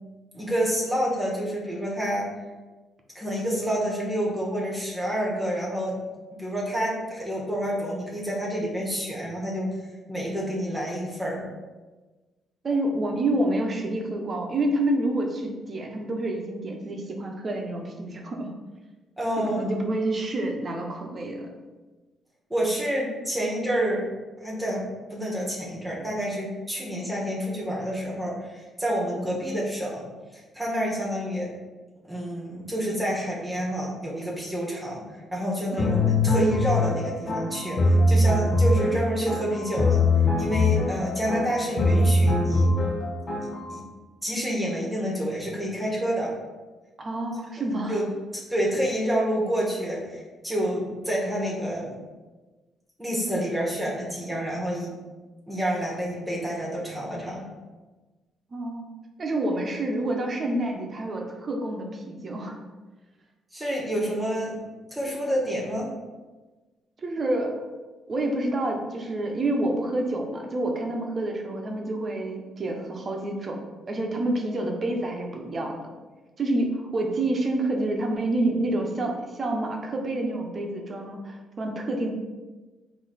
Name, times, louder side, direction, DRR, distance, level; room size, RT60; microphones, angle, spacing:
voice 1, 0.3-2.3 3.1-6.0 6.4-9.8 10.1-11.5 19.2-19.7 22.5-24.0 24.4-24.8 25.1-31.5 32.1-35.0 35.3-40.0 40.4-42.7 43.7-43.8 44.2-46.3 47.9-48.1 48.3-52.0 53.0-54.9 55.5-57.5 63.5-64.5 64.9-65.9, equal, 10° right, -4 dB, 1.2 m, -28 dB
voice 2, 12.6-18.5 19.4-21.6 29.2-29.6 35.7-36.2 47.0-48.0 58.5-58.9 59.2-62.6 67.0-67.5 68.1-75.7 76.4-82.1, right 1 dB, 40° right, 2 dB, 0.8 m, -28 dB
sound 1, 35.8-43.7, left 2 dB, 55° left, 0.9 m, -22 dB
4.0 x 2.8 x 4.1 m, 1.2 s
cardioid pair, 90°, 0 cm